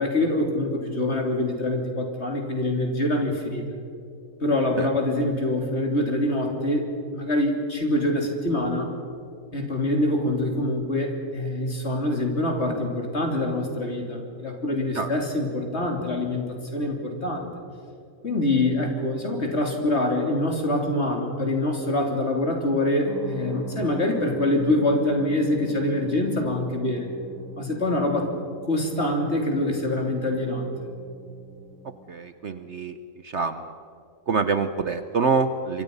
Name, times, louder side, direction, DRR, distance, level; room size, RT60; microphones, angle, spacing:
voice 1, 0.0-3.6 4.4-6.8 7.1-8.9 9.5-16.5 16.7-17.5 18.2-27.1 27.6-28.3 28.6-30.7, left 1 dB, 45° left, 2 dB, 3.6 m, -25 dB
sound 1, 23.1-32.1, equal, 10° left, 1.8 m, -43 dB
voice 2, 32.1-33.0 33.2-33.7 34.3-35.8, right 5 dB, 55° right, 10 dB, 1.0 m, -25 dB
27.0 x 24.0 x 5.5 m, 2.5 s
omnidirectional pair, 1.7 m